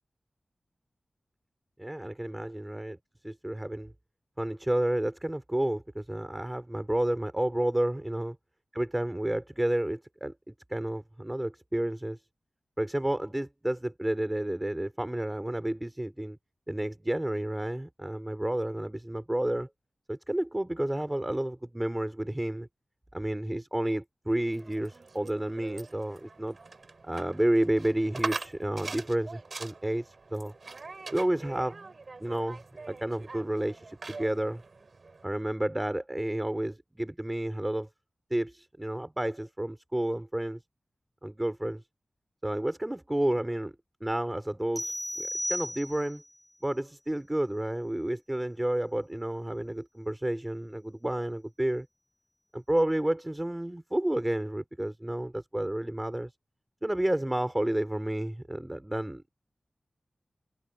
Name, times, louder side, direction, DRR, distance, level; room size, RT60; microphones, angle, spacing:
voice 1, 1.8-3.0 3.2-3.9 4.4-8.3 8.7-12.2 12.8-16.4 16.7-19.7 20.1-22.7 23.1-26.6 27.0-30.5 31.1-31.8 32.2-34.6 35.2-37.9 38.3-40.6 41.2-41.8 42.4-43.7 44.0-46.2 46.6-51.9 52.5-56.3 56.8-59.3, right 1 dB, 15° right, 3.6 m, -31 dB
sound 1, 24.3-35.2, right 3 dB, 60° right, 6.9 m, -42 dB
sound 2, 44.8-46.3, equal, 5° left, 1.1 m, -34 dB
wide cardioid pair, 70°, 0 cm